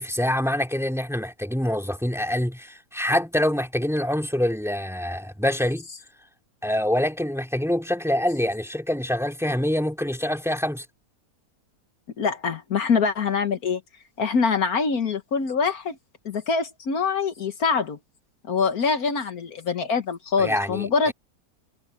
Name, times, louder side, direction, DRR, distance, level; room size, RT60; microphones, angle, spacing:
voice 1, 0.0-5.9 6.6-10.8 20.4-21.1, left 1 dB, ahead, 2.8 m, -25 dB
voice 2, 12.2-13.8 14.2-16.0 16.3-18.0 18.4-21.1, left 5 dB, 65° left, 1.7 m, -24 dB
omnidirectional pair, 1.7 m